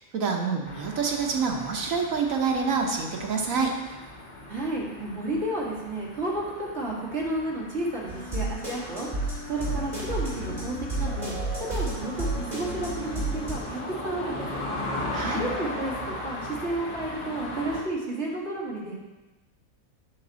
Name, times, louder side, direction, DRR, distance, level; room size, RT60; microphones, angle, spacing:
voice 1, 0.0-3.7 15.1-15.4, right 5 dB, 70° right, 1 dB, 1.5 m, -27 dB
sound 1, 0.6-17.8, left 2 dB, 30° left, 2.0 m, -38 dB
voice 2, 4.5-9.1 9.5-11.3 11.6-14.6 15.2-19.0, right 1 dB, 50° right, -4 dB, 2.0 m, -32 dB
sound 2, 8.1-13.5, right 2 dB, 30° right, 3.1 m, -31 dB
8.9 x 5.9 x 4.1 m, 1.1 s
omnidirectional pair, 1.5 m